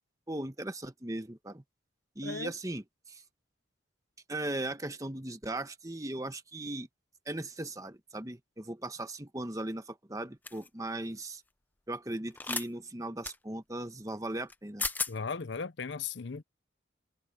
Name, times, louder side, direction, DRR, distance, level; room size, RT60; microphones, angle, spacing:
voice 1, 0.3-1.6 2.2-3.2 4.3-6.9 7.3-11.4 11.9-14.8, right 1 dB, 15° right, 1.1 m, -38 dB
voice 2, 2.2-2.5 15.1-16.4, left 5 dB, 70° left, 0.7 m, -37 dB
sound 1, 10.5-10.7 12.4-12.7 13.2-13.4 14.5-14.6 14.8-15.1, left 4 dB, 10° left, 0.5 m, -33 dB
head